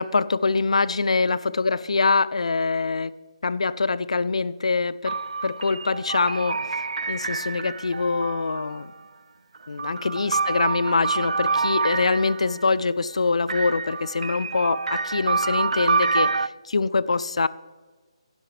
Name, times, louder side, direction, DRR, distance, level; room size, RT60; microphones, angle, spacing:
voice 1, 0.0-3.1 3.4-5.2 5.4-6.6 7.1-8.9 9.7-17.5, left 4 dB, 70° left, 18 dB, 0.4 m, -24 dB
sound 1, 5.0-8.8 9.5-12.6 13.5-16.5, right 4 dB, 85° right, 0.3 m, -27 dB
11.5 x 10.5 x 3.2 m, 1.4 s
hypercardioid pair, 180°, 3 cm